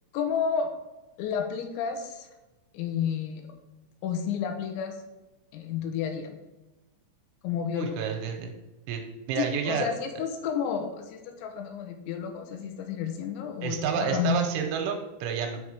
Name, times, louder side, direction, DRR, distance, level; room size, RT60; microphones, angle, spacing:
voice 1, 0.1-0.7 1.2-2.3 2.7-3.5 4.0-5.0 5.5-6.4 7.4-8.2 9.4-14.5, left 7 dB, 80° left, 5 dB, 3.0 m, -31 dB
voice 2, 7.8-8.5 8.9-9.9 13.6-15.6, right 7 dB, 80° right, 3 dB, 3.0 m, -30 dB
6.6 x 5.8 x 4.8 m, 1.1 s
omnidirectional pair, 5.8 m